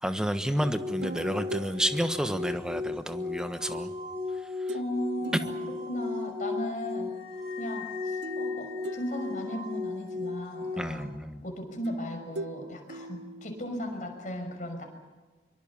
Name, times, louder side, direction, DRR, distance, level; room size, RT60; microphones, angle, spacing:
voice 1, 0.0-3.9 4.6-4.7 5.3-5.4 10.8-11.4, equal, 5° right, 9 dB, 1.2 m, -30 dB
sound 1, 0.6-11.0, left 3 dB, 35° right, 4.1 m, -36 dB
sound 2, 1.0-3.3 4.7-5.0 5.2-6.5 8.2-9.9 11.8-14.1, right 2 dB, 75° right, 0.9 m, -42 dB
voice 2, 4.7-5.5 5.9-7.1 7.6-11.1 11.4-14.8, left 1 dB, 45° left, 3 dB, 5.7 m, -36 dB
sound 3, 7.1-9.8, left 10 dB, 70° left, 3.1 m, -45 dB
24.5 x 23.5 x 7.4 m, 1.3 s
head